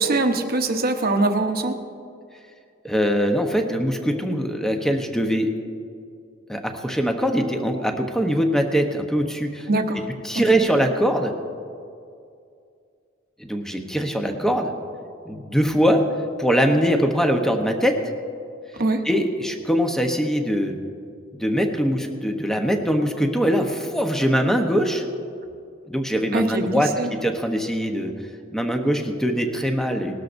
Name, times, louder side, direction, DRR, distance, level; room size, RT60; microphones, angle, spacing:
voice 1, 0.0-1.7 9.7-10.0 10.3-10.4 18.7-19.0 26.3-27.1, right 2 dB, 50° right, 6 dB, 0.9 m, -22 dB
voice 2, 2.8-5.5 6.5-9.7 10.2-11.3 13.4-14.7 15.3-16.0 16.4-18.0 19.0-20.7 21.3-25.0 25.9-26.9 27.2-28.1 28.5-30.1, equal, 5° left, 4 dB, 0.9 m, -22 dB
19.0 x 13.0 x 2.6 m, 2.4 s
head